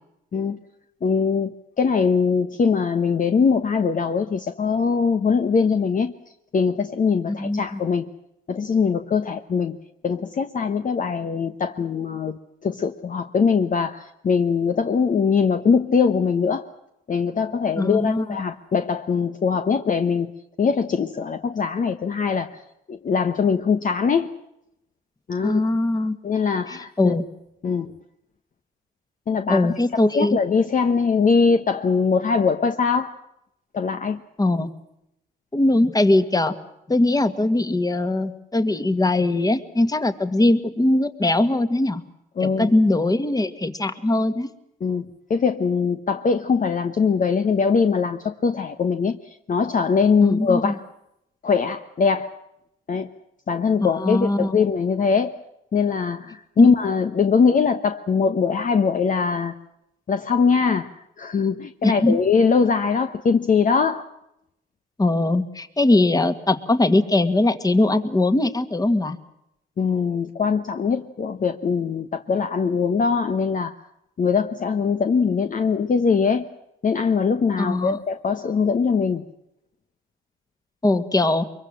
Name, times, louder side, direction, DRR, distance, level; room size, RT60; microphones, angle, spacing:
voice 1, 1.0-6.1 6.5-8.1 8.5-9.8 10.0-16.6 17.1-20.3 20.6-22.5 22.9-24.3 25.3-25.6 26.2-27.1 27.6-27.9 29.3-29.7 30.1-33.1 33.7-34.2 42.4-42.7 44.8-45.0 45.3-50.7 51.4-52.3 52.9-53.1 53.5-55.4 55.7-59.5 60.1-60.9 61.2-64.1 69.8-73.7 74.2-76.5 76.8-79.2, left 5 dB, 40° left, 7 dB, 1.1 m, -21 dB
voice 2, 7.3-7.8 17.8-18.3 25.4-26.2 26.7-27.2 29.5-30.4 34.4-34.7 35.5-36.5 36.9-42.0 42.4-44.5 50.2-50.7 53.8-54.6 56.6-56.7 61.8-62.2 65.0-69.2 77.6-78.0 80.8-81.5, left 2 dB, 20° left, 10 dB, 1.9 m, -21 dB
23.5 x 23.0 x 7.5 m, 0.82 s
cardioid pair, 90°, 20 cm